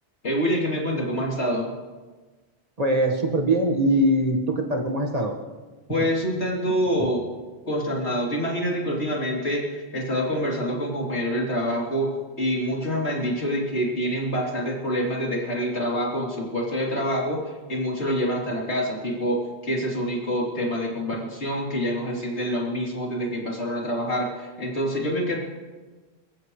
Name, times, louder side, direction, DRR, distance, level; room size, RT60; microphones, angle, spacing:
voice 1, 0.2-1.7 5.9-7.2 7.7-12.1 12.4-17.4 17.7-25.4, equal, 85° left, -3 dB, 3.6 m, -26 dB
voice 2, 2.8-5.3, right 1 dB, 35° right, 2 dB, 1.6 m, -22 dB
26.5 x 14.5 x 3.2 m, 1.3 s
omnidirectional pair, 1.1 m